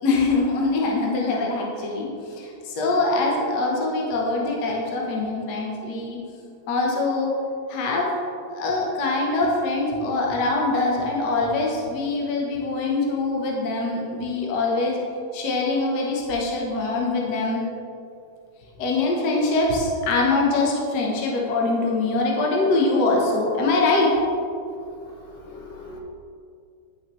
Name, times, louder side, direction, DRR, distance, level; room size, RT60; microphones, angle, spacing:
voice 1, 0.0-6.2 6.7-7.4 7.7-8.1 8.5-15.0 15.3-17.6 18.8-24.2, left 3 dB, 55° left, -1 dB, 1.5 m, -23 dB
voice 2, 25.0-26.0, left 3 dB, 75° left, -3 dB, 2.0 m, -42 dB
10.5 x 5.7 x 3.1 m, 2.4 s
omnidirectional pair, 2.3 m